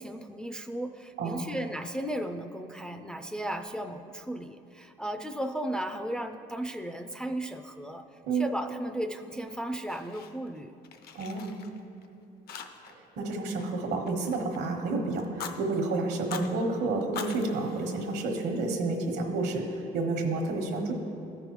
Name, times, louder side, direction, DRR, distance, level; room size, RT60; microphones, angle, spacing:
voice 1, 0.0-8.0 8.3-10.8, right 1 dB, 5° left, 5 dB, 0.3 m, -35 dB
Fire, 9.5-10.6 10.8-12.1 12.5-13.1 13.3-14.7 15.2-15.6 16.1-16.5 17.0-18.6, left 7 dB, 65° left, 0.6 m, -43 dB
voice 2, 11.1-11.5 13.2-20.9, right 3 dB, 80° right, 3 dB, 1.1 m, -30 dB
14.0 x 5.4 x 3.0 m, 2.7 s
cardioid pair, 110°, 17 cm